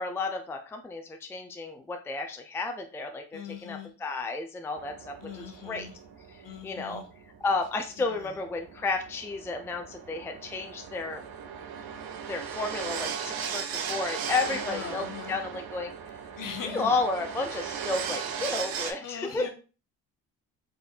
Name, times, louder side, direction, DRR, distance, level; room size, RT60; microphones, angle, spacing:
voice 1, 0.0-5.9 6.3-7.0 7.4-11.2 12.3-15.9 16.6-19.5, left 3 dB, 5° left, 4 dB, 0.4 m, -32 dB
voice 2, 3.3-3.9 5.2-5.9 6.4-7.1 8.0-8.3 14.5-15.4 16.4-16.9 19.0-19.5, left 7 dB, 55° left, 5 dB, 0.9 m, -40 dB
sound 1, 4.8-18.9, right 7 dB, 60° right, 0.7 m, -37 dB
3.9 x 2.6 x 2.5 m, 0.34 s
supercardioid pair, 70°, 40 cm